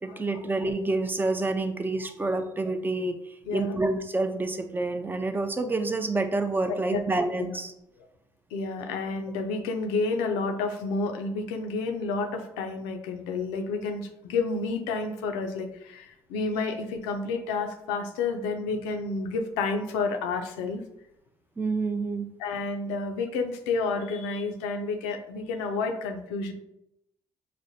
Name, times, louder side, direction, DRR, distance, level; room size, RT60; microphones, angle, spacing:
voice 1, 0.0-7.7 21.6-22.3, right 2 dB, 20° right, 7 dB, 0.5 m, -28 dB
voice 2, 3.5-3.8 6.7-7.0 7.4-7.6 8.5-20.8 22.4-26.5, left 4 dB, 85° left, 5 dB, 0.4 m, -30 dB
4.9 x 2.1 x 2.7 m, 0.81 s
hypercardioid pair, 55°, 10 cm